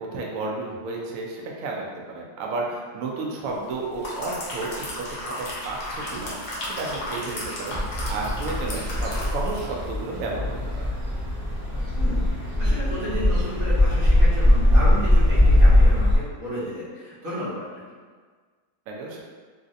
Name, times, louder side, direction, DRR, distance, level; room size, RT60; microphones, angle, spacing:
voice 1, 0.0-5.1 5.4-7.8 8.1-10.4 10.8-10.9 18.9-19.2, right 3 dB, 75° right, -2 dB, 0.8 m, -32 dB
sound 1, 3.7-9.7 10.1-10.2, left 1 dB, 60° left, 0.9 m, -34 dB
sound 2, 7.7-16.2, left 1 dB, 35° right, 0.5 m, -20 dB
voice 2, 11.9-12.3 12.6-17.8, equal, 55° right, -10 dB, 1.4 m, -33 dB
3.1 x 2.6 x 2.5 m, 1.5 s
omnidirectional pair, 2.0 m